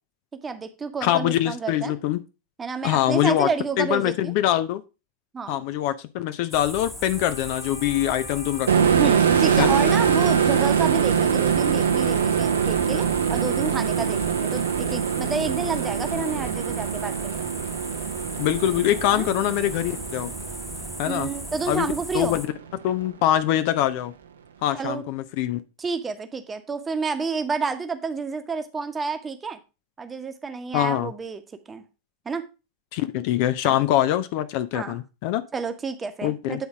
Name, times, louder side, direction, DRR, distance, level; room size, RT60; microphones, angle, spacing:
voice 1, 0.4-1.9 2.6-4.3 5.3-5.6 8.9-17.5 19.1-19.3 21.1-22.4 24.7-25.0 25.8-29.6 30.0-31.4 31.7-31.8 32.2-32.4 33.6-33.8 34.7-35.0 35.5-36.7, right 5 dB, 15° right, 8 dB, 1.1 m, -30 dB
voice 2, 1.0-2.2 2.8-3.5 3.8-4.8 5.5-8.9 9.6-9.7 18.4-20.3 21.0-21.3 21.7-21.9 22.1-22.5 22.8-24.1 24.6-25.6 30.7-31.1 32.9-35.4 36.2-36.6, left 12 dB, 45° left, 12 dB, 0.5 m, -23 dB
sound 1, 6.5-22.5, left 1 dB, 5° left, 1.2 m, -37 dB
Wind instrument woodwind instrument, 7.1-13.0, left 2 dB, 75° left, 1.2 m, -39 dB
Long analog bang, 8.7-22.1, right 7 dB, 65° right, 0.8 m, -23 dB
9.2 x 4.0 x 4.9 m, 0.30 s
figure-of-eight pair, 90°, 0 cm